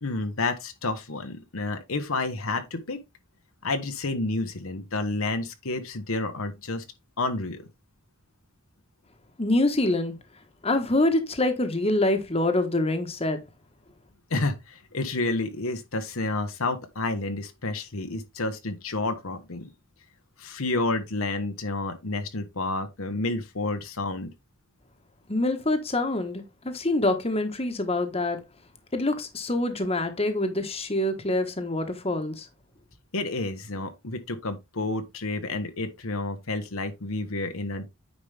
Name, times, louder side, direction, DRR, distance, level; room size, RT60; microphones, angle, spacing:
voice 1, 0.0-3.0 3.6-6.8 7.2-7.7 14.3-19.7 20.4-24.3 33.1-37.9, left 2 dB, 80° left, 1.2 m, -30 dB
voice 2, 9.4-10.1 10.6-13.4 25.3-28.4 28.9-32.4, left 2 dB, 30° left, 1.3 m, -25 dB
9.3 x 5.1 x 3.4 m
head